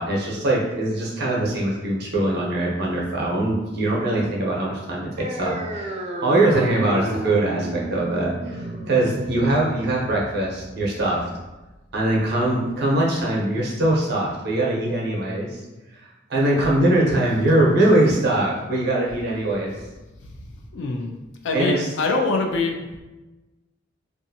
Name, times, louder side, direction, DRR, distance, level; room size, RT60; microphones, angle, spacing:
voice 1, 0.0-11.3 11.9-15.6 16.3-19.7 21.5-21.9, right 1 dB, 60° right, -3 dB, 0.7 m, -22 dB
sound 1, 5.2-12.2, right 1 dB, 35° right, 0.4 m, -33 dB
voice 2, 20.7-21.1 21.4-22.8, left 3 dB, 65° left, 3 dB, 0.4 m, -23 dB
2.6 x 2.4 x 2.6 m, 1.1 s
head